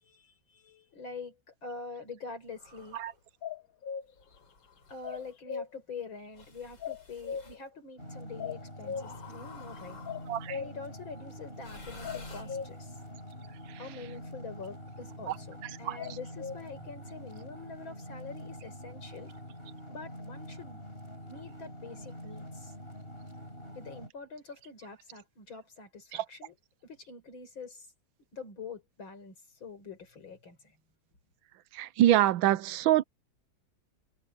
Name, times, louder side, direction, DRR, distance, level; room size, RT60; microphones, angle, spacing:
voice 1, 0.0-3.0 4.9-10.0 10.5-13.0 13.8-19.3 19.9-20.8 21.2-22.7 23.7-26.6 26.8-27.9 28.3-30.8, left 4 dB, 85° left, 5.3 m, -45 dB
sound 1, 2.5-3.2 4.2-5.4 6.3-7.6 8.9-10.5 11.5-13.0, left 4 dB, 70° left, 5.8 m, -52 dB
sound 2, 3.4-4.1 5.0-5.7 6.8-7.6 8.4-9.1 10.1-10.8 12.0-12.7 16.0-16.6, left 7 dB, 55° left, 1.2 m, -38 dB
sound 3, 8.0-24.1, equal, 30° left, 8.1 m, -45 dB
voice 2, 31.7-33.0, right 13 dB, 85° right, 1.4 m, -25 dB
omnidirectional pair, 2.1 m